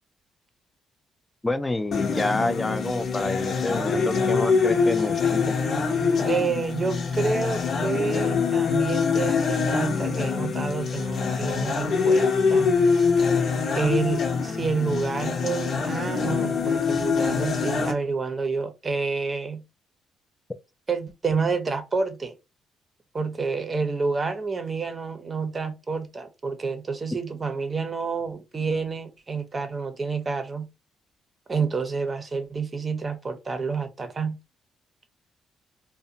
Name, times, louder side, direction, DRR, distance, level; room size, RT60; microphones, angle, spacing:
voice 1, 1.4-5.5, left 2 dB, 15° left, 0.4 m, -28 dB
sound 1, 1.9-17.9, left 5 dB, 65° left, 0.7 m, -24 dB
voice 2, 6.2-12.7 13.7-19.6 20.9-22.3 23.1-30.7 31.5-34.4, right 4 dB, 30° right, 0.6 m, -29 dB
2.5 x 2.1 x 2.7 m
cardioid pair, 90°, 0 cm